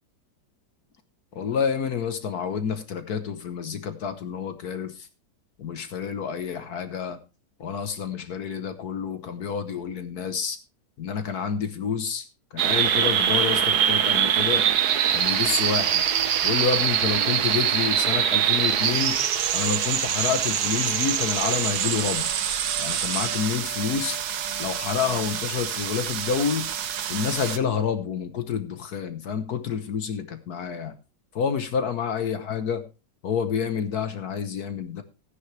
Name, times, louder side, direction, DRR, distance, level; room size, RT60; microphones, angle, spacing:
voice 1, 1.3-5.1 5.6-7.2 7.6-10.6 11.0-12.3 12.5-14.6 15.1-16.0 16.4-19.2 19.5-22.3 22.8-24.2 24.6-26.7 27.1-31.0 31.3-32.8 33.2-35.0, left 7 dB, 60° left, 10 dB, 1.5 m, -28 dB
sound 1, 12.6-27.6, right 9 dB, 65° right, 1.4 m, -24 dB
14.5 x 10.0 x 3.3 m, 0.29 s
omnidirectional pair, 1.9 m